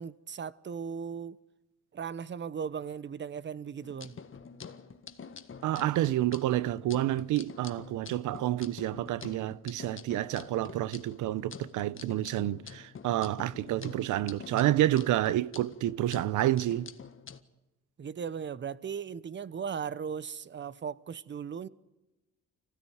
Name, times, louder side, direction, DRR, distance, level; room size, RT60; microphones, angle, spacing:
voice 1, 0.0-1.4 1.9-4.2 18.0-21.7, right 7 dB, 40° right, 0.9 m, -37 dB
sound 1, 3.8-17.4, left 6 dB, 45° left, 1.6 m, -47 dB
voice 2, 5.6-16.9, right 14 dB, 80° right, 0.8 m, -29 dB
25.5 x 16.5 x 9.4 m
cardioid pair, 90°, 30 cm